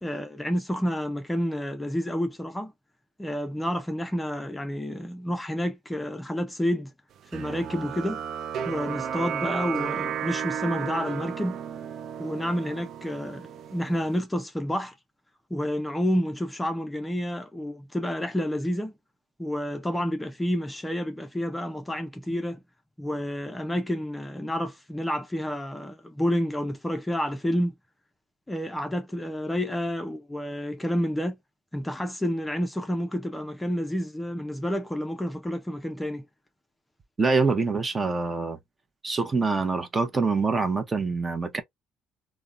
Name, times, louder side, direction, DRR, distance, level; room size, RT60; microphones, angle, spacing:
voice 1, 0.0-2.7 3.2-6.9 7.3-8.2 8.7-11.6 12.2-14.9 15.5-18.9 19.4-22.6 23.0-27.7 28.5-31.4 31.7-36.2, equal, 10° left, 0.5 m, -29 dB
sound 1, 7.3-14.2, right 8 dB, 60° right, 0.3 m, -33 dB
voice 2, 37.2-38.6 39.0-41.6, right 4 dB, 25° right, 0.7 m, -25 dB
3.5 x 2.1 x 2.5 m
cardioid pair, 95°, 0 cm